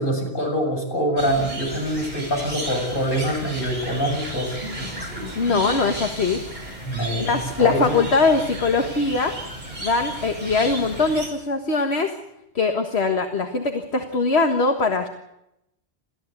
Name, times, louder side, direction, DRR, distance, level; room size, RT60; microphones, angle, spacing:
voice 1, 0.0-5.8 6.8-7.9, equal, 55° left, 1 dB, 7.2 m, -25 dB
sound 1, 1.2-11.3, right 1 dB, 45° right, 7.8 m, -34 dB
voice 2, 5.3-6.4 7.2-9.3 9.8-12.1 12.6-15.1, left 4 dB, 80° left, 4 dB, 1.9 m, -21 dB
29.0 x 14.5 x 8.2 m, 0.84 s
omnidirectional pair, 1.1 m